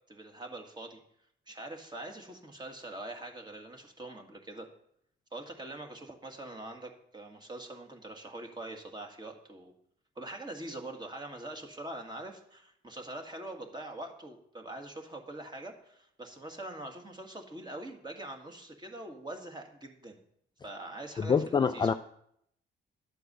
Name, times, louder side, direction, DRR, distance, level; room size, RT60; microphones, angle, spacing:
voice 1, 0.1-1.0 1.5-4.7 5.3-9.7 10.2-20.2 20.6-21.9, right 1 dB, 20° right, 3 dB, 1.8 m, -43 dB
voice 2, 21.2-21.9, left 6 dB, 25° left, 9 dB, 0.3 m, -26 dB
11.5 x 4.6 x 7.9 m, 0.72 s
cardioid pair, 90°, 20 cm